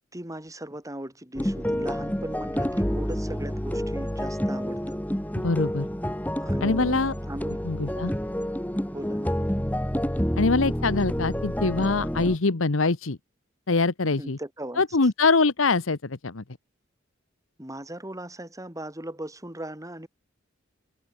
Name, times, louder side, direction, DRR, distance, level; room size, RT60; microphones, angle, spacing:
voice 1, 0.1-5.0 6.4-7.6 7.9-8.2 8.9-9.3 14.0-14.8 17.6-20.1, right 1 dB, 15° right, 4.7 m, -38 dB
sound 1, 1.3-12.4, equal, 10° left, 2.6 m, -29 dB
voice 2, 5.4-5.9 6.6-7.1 7.6-8.1 10.4-13.2 13.7-14.4 14.8-16.4, left 3 dB, 90° left, 1.1 m, -23 dB
head